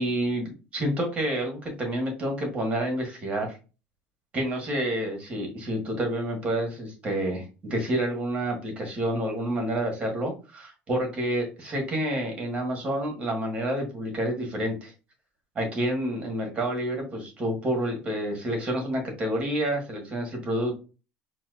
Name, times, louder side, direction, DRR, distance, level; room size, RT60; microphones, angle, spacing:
voice 1, 0.0-3.6 4.3-14.9 15.5-20.8, right 1 dB, 30° right, 2 dB, 1.6 m, -29 dB
4.3 x 2.3 x 2.4 m, 0.32 s
cardioid pair, 115°, 4 cm